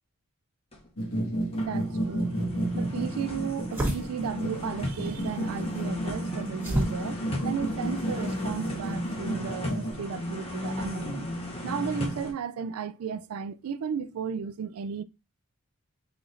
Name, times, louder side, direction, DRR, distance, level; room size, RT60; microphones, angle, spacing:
sound 1, 0.7-0.9 1.3-12.3, left 1 dB, 25° left, 1.1 m, -36 dB
sound 2, 1.0-9.9, right 1 dB, 65° left, 1.5 m, -32 dB
voice 1, 1.6-2.4 2.7-11.3 11.6-15.0, right 7 dB, 85° right, 0.4 m, -34 dB
sound 3, 2.5-8.8, right 1 dB, 10° right, 1.3 m, -36 dB
4.9 x 4.1 x 2.5 m
head